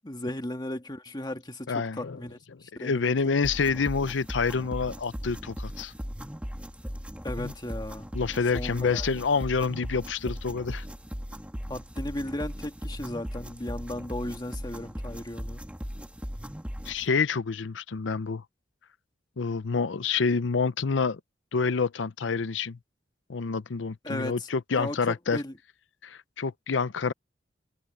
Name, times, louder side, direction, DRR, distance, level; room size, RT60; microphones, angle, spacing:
voice 1, 0.0-3.4 7.2-8.1 8.5-9.1 11.7-15.6 24.0-24.5 24.8-25.5, left 1 dB, 25° left, 1.8 m, -36 dB
voice 2, 1.7-2.2 2.8-5.9 7.4-7.5 8.1-10.8 16.9-18.4 19.4-21.2 21.5-22.8 23.3-25.4 26.0-27.1, left 5 dB, 85° left, 0.6 m, -27 dB
sound 1, 3.4-17.1, equal, 5° right, 2.1 m, -38 dB
head